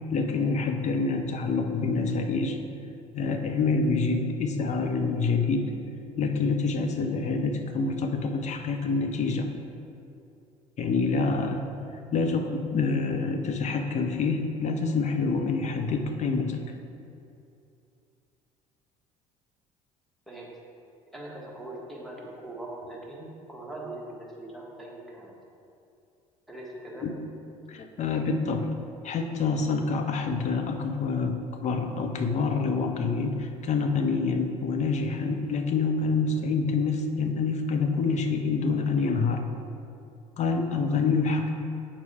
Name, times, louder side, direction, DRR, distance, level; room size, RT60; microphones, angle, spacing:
voice 1, 0.1-2.6 3.1-5.7 6.2-9.5 10.8-11.7 12.1-16.6 27.0-27.2 27.7-28.7 29.0-39.4 40.4-41.5, left 4 dB, 40° left, 5 dB, 0.8 m, -27 dB
voice 2, 20.3-20.6 21.1-25.4 26.5-27.1, right 1 dB, ahead, -5 dB, 1.7 m, -41 dB
7.2 x 6.1 x 3.5 m, 2.6 s
figure-of-eight pair, 55°, 18 cm